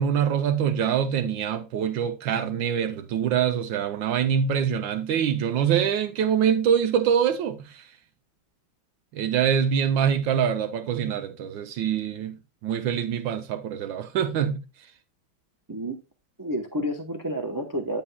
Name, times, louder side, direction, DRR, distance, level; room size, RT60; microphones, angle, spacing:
voice 1, 0.0-7.9 9.1-14.6, right 8 dB, 75° right, 1.4 m, -24 dB
voice 2, 16.4-18.0, equal, 30° right, 0.3 m, -30 dB
9.7 x 8.5 x 2.2 m
omnidirectional pair, 2.2 m